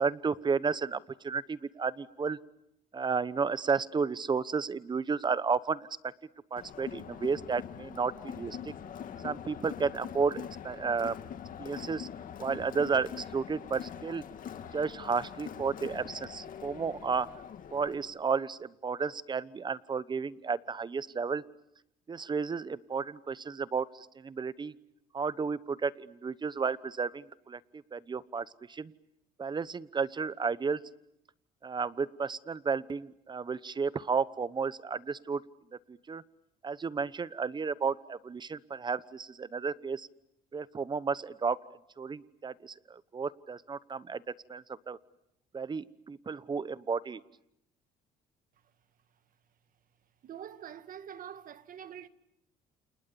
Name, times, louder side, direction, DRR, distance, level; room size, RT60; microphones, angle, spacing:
voice 1, 0.0-2.4 2.9-6.1 6.5-8.7 9.2-11.2 11.6-12.1 12.4-14.2 14.7-17.3 17.7-21.4 22.1-24.7 25.1-28.9 29.4-30.8 31.6-35.4 35.9-36.2 36.6-40.1 40.5-41.6 42.0-44.2 44.5-45.0 45.5-47.2, right 5 dB, 25° right, 1.0 m, -32 dB
Crowd, 6.6-18.1, left 8 dB, 55° left, 2.2 m, -43 dB
voice 2, 50.2-52.1, right 9 dB, 55° right, 1.7 m, -45 dB
29.0 x 28.5 x 7.0 m
cardioid pair, 110°, 17 cm